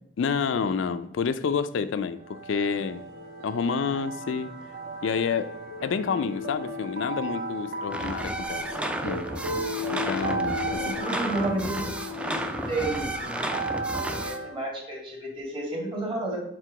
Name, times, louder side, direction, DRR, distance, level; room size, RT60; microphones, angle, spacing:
voice 1, 0.2-3.0 3.4-4.5 5.0-5.5 5.8-8.6 9.0-9.3 9.9-10.9, left 6 dB, 70° left, 11 dB, 0.4 m, -29 dB
sound 1, 2.2-14.6, equal, 50° right, 1.0 m, -35 dB
sound 2, 7.9-14.4, right 1 dB, 5° right, 0.3 m, -32 dB
voice 2, 10.8-11.9 12.3-13.5 14.2-16.4, right 2 dB, 25° right, -1 dB, 1.8 m, -31 dB
4.6 x 4.3 x 4.9 m, 0.77 s
head